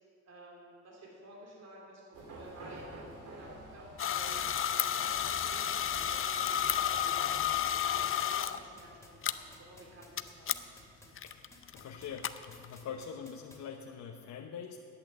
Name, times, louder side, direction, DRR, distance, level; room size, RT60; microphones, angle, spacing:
voice 1, 0.2-7.4 7.7-10.5, right 1 dB, 60° right, -3 dB, 3.1 m, -52 dB
sound 1, 2.1-8.1, right 1 dB, 85° right, 2.8 m, -49 dB
sound 2, 4.0-8.6 9.2-9.3 10.2-10.3 10.5-10.6 11.2-12.7, left 10 dB, 45° left, 0.6 m, -31 dB
sound 3, 5.8-13.6, left 1 dB, 10° left, 2.8 m, -55 dB
voice 2, 11.7-14.8, left 7 dB, 70° left, 2 dB, 0.9 m, -43 dB
11.0 x 8.7 x 7.8 m, 2.4 s
cardioid pair, 90°, 30 cm